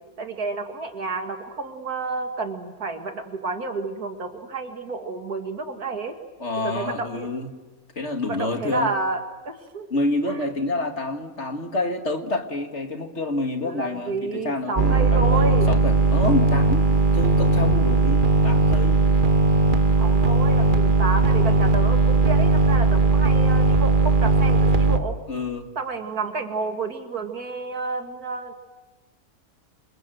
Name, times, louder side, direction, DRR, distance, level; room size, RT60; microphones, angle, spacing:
voice 1, 0.2-6.2 6.6-7.3 8.3-9.9 10.3-10.5 13.6-15.7 20.0-25.2 25.8-28.5, right 3 dB, 70° right, 5 dB, 2.7 m, -30 dB
voice 2, 6.4-7.5 8.0-8.9 9.9-16.9 17.1-19.1 25.3-25.7, left 2 dB, 45° left, 5 dB, 2.1 m, -28 dB
sound 1, 14.8-25.0, right 3 dB, 35° right, 1.4 m, -18 dB
27.5 x 27.0 x 7.8 m, 1.2 s
omnidirectional pair, 1.7 m